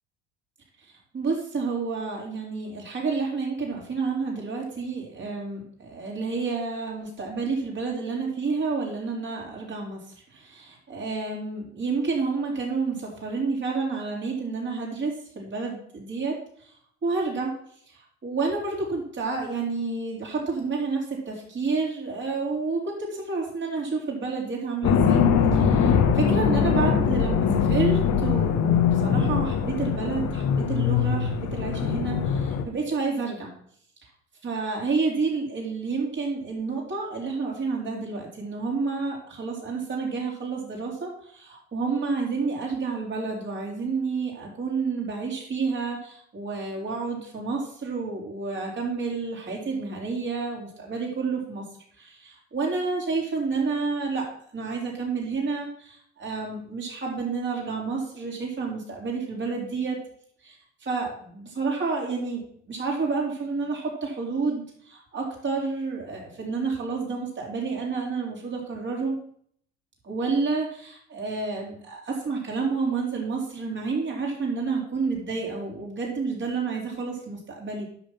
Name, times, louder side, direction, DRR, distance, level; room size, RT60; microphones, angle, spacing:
voice 1, 1.1-10.0 10.3-16.7 17.0-17.5 17.9-25.2 25.5-33.5 34.4-51.6 52.0-60.0 60.4-69.1 70.0-77.8, right 4 dB, 30° right, -2 dB, 4.9 m, -30 dB
sound 1, 24.8-32.6, left 7 dB, 55° left, 1.6 m, -22 dB
10.5 x 6.8 x 6.0 m, 0.63 s
hypercardioid pair, 75°, 35 cm